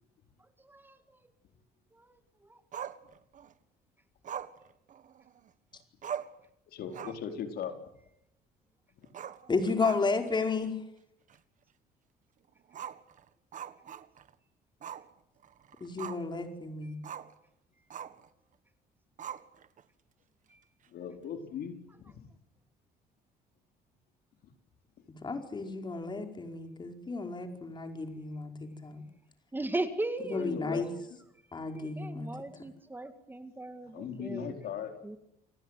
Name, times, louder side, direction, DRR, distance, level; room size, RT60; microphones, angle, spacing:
voice 1, 0.6-1.2 1.9-2.6 16.8-16.9 20.5-20.6 29.5-30.5 31.7-34.6 35.0-35.2, right 2 dB, 10° right, 2.2 m, -38 dB
Growling, 2.7-3.5 4.2-5.5 5.8-5.9 6.0-6.4 6.8-7.3 7.6-7.7 9.1-10.3 10.6-10.7 11.3-11.4 12.7-14.3 14.8-15.1 15.4-16.4 17.0-17.3 17.9-18.3 19.2-19.8, right 9 dB, 50° right, 1.7 m, -42 dB
voice 2, 6.7-7.8 20.9-21.8 30.4-30.9 33.9-34.9, left 8 dB, 65° left, 4.5 m, -38 dB
voice 3, 9.5-10.8 15.8-17.0 25.2-29.0 30.3-30.9 31.5-32.3, left 4 dB, 25° left, 4.9 m, -33 dB
29.5 x 19.0 x 9.2 m
cardioid pair, 110°, 17 cm